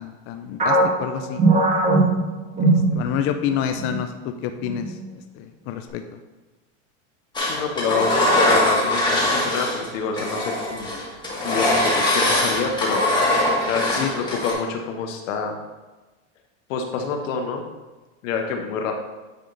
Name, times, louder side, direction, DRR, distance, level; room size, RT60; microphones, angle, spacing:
voice 1, 0.0-1.4 2.6-5.0 5.3-6.2 14.0-14.1, left 9 dB, 35° left, 7 dB, 0.4 m, -28 dB
sound 1, 0.6-3.4 3.8-4.0 4.6-5.1, right 2 dB, 20° right, 1.5 m, -20 dB
voice 2, 7.4-10.9 11.4-13.0 13.7-15.5 16.7-17.6 18.2-18.9, left 5 dB, 80° left, 3 dB, 1.2 m, -27 dB
Engine, 7.4-9.9 10.2-14.5, left 1 dB, 10° left, 1.8 m, -21 dB
9.3 x 3.6 x 3.9 m, 1.2 s
supercardioid pair, 130°, 38 cm